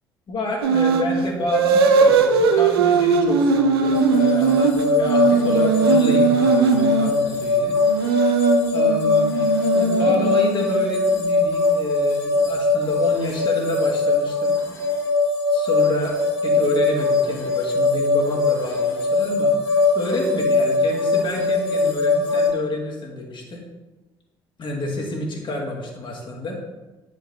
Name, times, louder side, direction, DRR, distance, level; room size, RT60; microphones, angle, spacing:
voice 1, 0.3-7.7 8.7-14.5 15.5-23.6 24.6-26.6, left 2 dB, 40° left, -2 dB, 2.0 m, -28 dB
sound 1, 0.6-1.1 1.5-7.1 7.8-10.8, right 5 dB, 80° right, 0.5 m, -19 dB
sound 2, 3.9-22.5, left 3 dB, 80° left, 1.7 m, -21 dB
9.9 x 5.3 x 2.7 m, 1.2 s
figure-of-eight pair, 50°, 13 cm